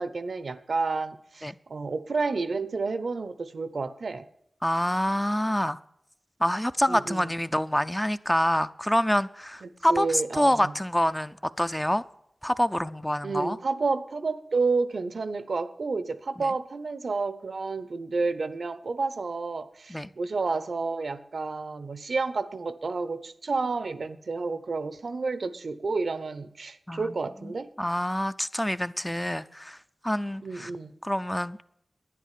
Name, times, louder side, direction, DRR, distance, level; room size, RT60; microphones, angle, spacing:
voice 1, 0.0-4.2 6.9-7.3 9.6-10.7 13.2-27.7 30.4-30.9, right 4 dB, 80° right, 0.8 m, -30 dB
voice 2, 4.6-5.8 6.4-12.0 12.4-13.6 16.4-16.5 19.9-20.1 26.9-27.1 27.4-27.5 27.8-29.8 30.0-30.7 31.0-31.6, equal, 10° left, 0.5 m, -26 dB
11.0 x 9.9 x 7.4 m
wide cardioid pair, 70°, 0 cm